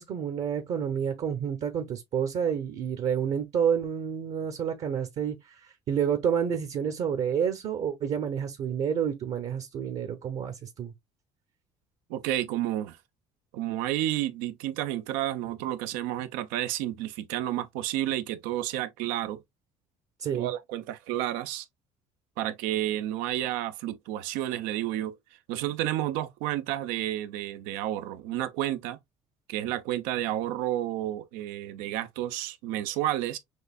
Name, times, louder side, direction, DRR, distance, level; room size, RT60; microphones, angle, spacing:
voice 1, 0.0-10.9 20.2-20.5, right 8 dB, 55° right, 1.0 m, -29 dB
voice 2, 12.1-13.0 13.5-19.4 20.3-21.7 22.4-25.2 25.5-29.0 29.5-33.4, right 13 dB, 85° right, 0.7 m, -31 dB
6.3 x 2.7 x 2.4 m
supercardioid pair, 95°, 14 cm